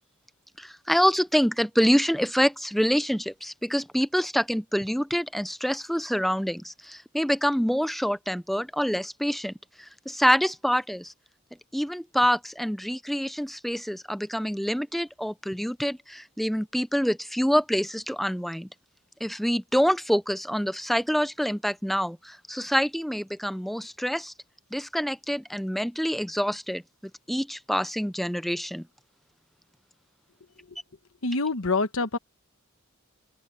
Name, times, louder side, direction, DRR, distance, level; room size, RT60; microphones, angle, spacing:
voice 1, 0.6-11.1 11.7-18.7 19.2-24.3 24.7-26.8 27.3-28.9, equal, ahead, 0.6 m, -26 dB
voice 2, 31.2-32.2, left 3 dB, 75° left, 1.2 m, -26 dB
open air
head